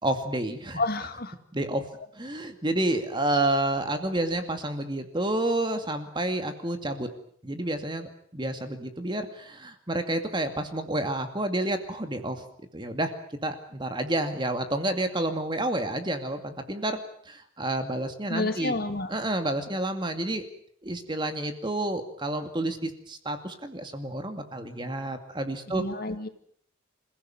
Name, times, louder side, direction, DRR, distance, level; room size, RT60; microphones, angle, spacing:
voice 1, 0.0-0.8 1.5-1.8 2.1-7.1 7.4-12.4 12.7-13.1 13.4-17.0 17.3-18.8 19.1-20.4 20.8-25.8, right 1 dB, 25° right, 7 dB, 2.4 m, -29 dB
voice 2, 0.7-1.4 18.3-19.1 25.7-26.3, left 2 dB, 50° left, 8 dB, 2.2 m, -30 dB
27.5 x 16.0 x 9.1 m, 0.62 s
head